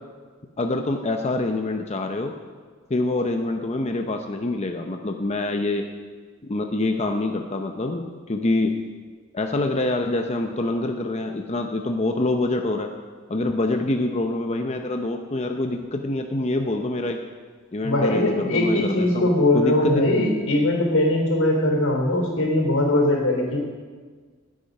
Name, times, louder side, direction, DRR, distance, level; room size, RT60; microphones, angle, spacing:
voice 1, 0.6-2.3 2.9-5.9 6.4-8.9 9.3-12.9 13.3-17.2 17.7-20.3, left 2 dB, 30° left, 4 dB, 0.7 m, -25 dB
voice 2, 17.8-23.6, left 1 dB, 85° left, 1 dB, 3.8 m, -21 dB
20.0 x 8.7 x 5.4 m, 1.5 s
head